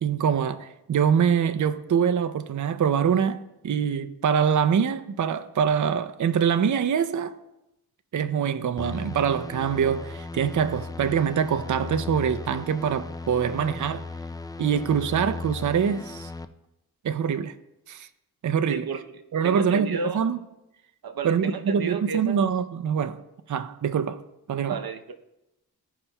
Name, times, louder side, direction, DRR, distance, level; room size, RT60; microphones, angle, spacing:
voice 1, 0.0-7.3 8.1-14.0 14.6-16.3 17.0-17.5 17.9-18.1 18.4-18.9 19.3-20.4 21.2-23.2 23.5-24.2 24.5-24.8, right 7 dB, 50° right, 0.5 m, -24 dB
sound 1, 8.8-16.5, left 3 dB, 10° left, 0.4 m, -37 dB
voice 2, 18.7-20.2 21.0-22.4 24.7-25.1, right 4 dB, 70° right, 0.8 m, -32 dB
16.0 x 5.5 x 2.3 m
cardioid pair, 65°, 38 cm